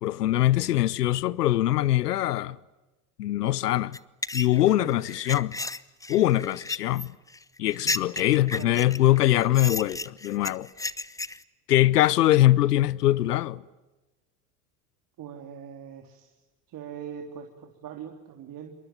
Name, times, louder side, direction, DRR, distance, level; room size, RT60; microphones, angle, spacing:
voice 1, 0.0-2.6 3.2-4.0 4.3-5.5 6.1-7.1 7.6-10.7 11.7-13.6, left 14 dB, 90° left, 0.9 m, -22 dB
sound 1, 3.9-11.4, left 2 dB, 5° left, 1.0 m, -34 dB
voice 2, 4.5-5.0 8.5-8.7 15.2-16.3 16.7-18.7, right 8 dB, 45° right, 3.5 m, -41 dB
27.5 x 23.5 x 9.1 m
hypercardioid pair, 85°, 46 cm